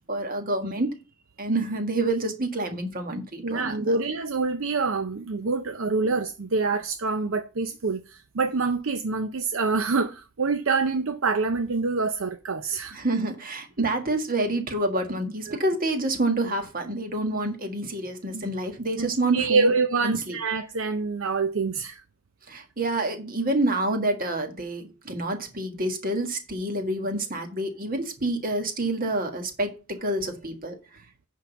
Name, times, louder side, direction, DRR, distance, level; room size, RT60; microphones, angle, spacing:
voice 1, 0.1-0.9 1.4-4.0 12.9-19.7 20.0-20.4 22.5-30.8, right 2 dB, 40° right, 1.6 m, -28 dB
voice 2, 3.4-13.0 15.5-15.6 18.3-18.5 19.0-22.0, right 4 dB, 60° right, 0.6 m, -26 dB
10.5 x 3.8 x 7.0 m
head